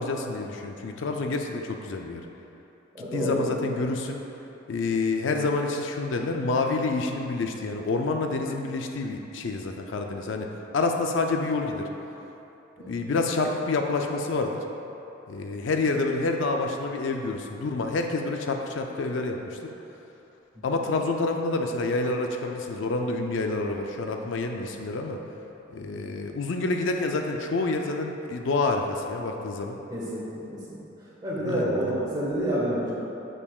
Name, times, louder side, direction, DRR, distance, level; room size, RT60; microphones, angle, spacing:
voice 1, 0.0-2.2 3.1-4.2 4.7-11.9 12.9-14.6 15.3-19.7 20.6-25.2 25.7-29.8 31.4-32.0, left 3 dB, 70° left, 3 dB, 0.4 m, -28 dB
voice 2, 2.9-3.6 12.8-12.9 25.9-26.1 29.9-30.2 31.2-32.9, right 1 dB, 20° right, -7 dB, 1.4 m, -28 dB
8.3 x 5.7 x 2.4 m, 3.0 s
head